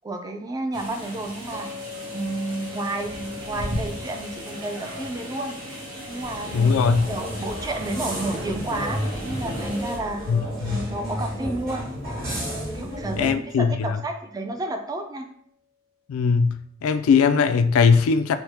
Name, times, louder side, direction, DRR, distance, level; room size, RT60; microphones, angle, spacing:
voice 1, 0.0-1.7 2.1-5.6 6.1-6.7 7.1-10.2 10.6-11.9 12.7-15.3, right 2 dB, 20° right, 5 dB, 0.3 m, -31 dB
sound 1, 0.7-10.0, equal, 85° right, 1.5 m, -37 dB
sound 2, 1.5-14.6, left 6 dB, 70° right, 0.8 m, -45 dB
sound 3, 6.4-13.3, equal, 45° right, 1.3 m, -31 dB
voice 2, 6.5-7.1 10.3-10.8 13.2-14.0 16.1-18.4, left 5 dB, 85° left, 10 dB, 0.3 m, -20 dB
4.4 x 2.1 x 3.4 m, 0.64 s
head